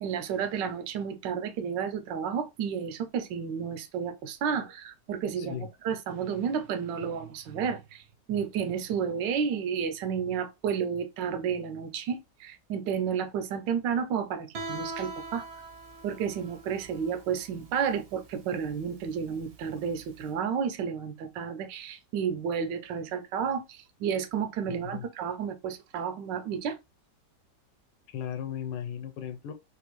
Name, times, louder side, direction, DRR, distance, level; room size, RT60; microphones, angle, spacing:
voice 1, 0.0-8.0 8.3-15.4 16.0-26.8, right 7 dB, 90° right, 1.3 m, -31 dB
voice 2, 5.4-5.7 24.7-25.1 28.1-29.5, left 9 dB, 85° left, 1.3 m, -36 dB
Guitar, 14.5-20.2, right 2 dB, 60° right, 0.6 m, -42 dB
3.4 x 2.4 x 2.9 m
omnidirectional pair, 1.9 m